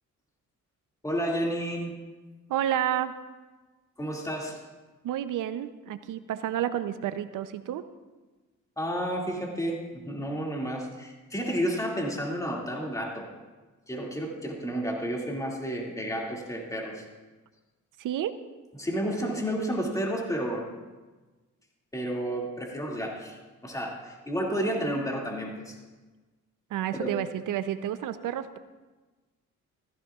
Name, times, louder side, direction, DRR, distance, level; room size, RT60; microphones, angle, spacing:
voice 1, 1.0-1.9 4.0-4.6 8.8-13.3 13.9-17.1 18.8-20.7 21.9-25.8 26.9-27.1, equal, 10° left, -2 dB, 2.3 m, -31 dB
voice 2, 2.5-3.1 5.0-7.8 18.0-18.4 26.7-28.6, right 11 dB, 80° right, 11 dB, 0.7 m, -30 dB
15.0 x 15.0 x 2.4 m, 1.3 s
cardioid pair, 90°, 31 cm